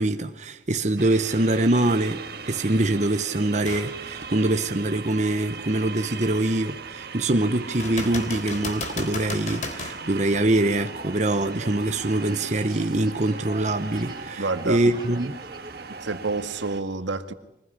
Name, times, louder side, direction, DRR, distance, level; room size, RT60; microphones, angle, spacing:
voice 1, 0.0-15.4, right 2 dB, 40° right, 1.0 m, -24 dB
sound 1, 1.0-16.8, right 5 dB, 55° right, 1.7 m, -39 dB
sound 2, 3.7-3.9 4.5-4.6 7.8-10.0 13.7-13.8, left 2 dB, 40° left, 3.2 m, -33 dB
sound 3, 10.4-16.3, right 1 dB, 25° right, 3.9 m, -44 dB
voice 2, 14.4-14.8 16.0-17.3, right 3 dB, 85° right, 1.9 m, -28 dB
25.0 x 20.5 x 10.0 m
head